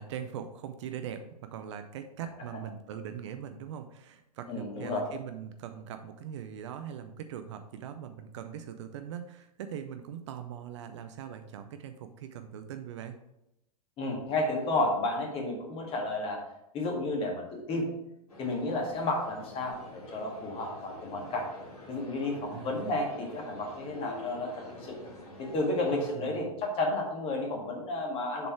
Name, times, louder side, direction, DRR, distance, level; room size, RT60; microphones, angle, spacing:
voice 1, 0.0-13.2 22.3-23.0 25.9-26.5, right 9 dB, 50° right, 8 dB, 0.6 m, -41 dB
voice 2, 4.5-5.0 14.0-16.4 16.7-17.9 18.4-21.5 21.9-25.0 25.4-28.5, left 2 dB, 30° left, 1 dB, 1.7 m, -32 dB
sound 1, 18.3-26.2, left 1 dB, 70° left, 2.6 m, -48 dB
6.7 x 4.2 x 4.5 m, 0.85 s
figure-of-eight pair, 105°, 20 cm